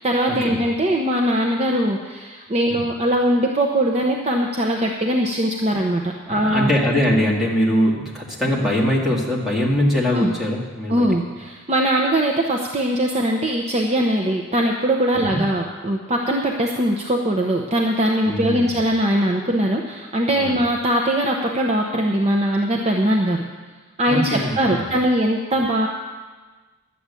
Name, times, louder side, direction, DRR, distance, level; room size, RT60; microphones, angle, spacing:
voice 1, 0.0-6.7 10.1-10.3 10.9-23.4 24.0-25.9, right 1 dB, 30° right, 1 dB, 0.8 m, -21 dB
voice 2, 6.3-11.1 15.1-15.4 18.2-18.7 20.4-20.6 24.1-24.9, equal, ahead, -5 dB, 2.2 m, -22 dB
11.5 x 7.8 x 8.4 m, 1.3 s
head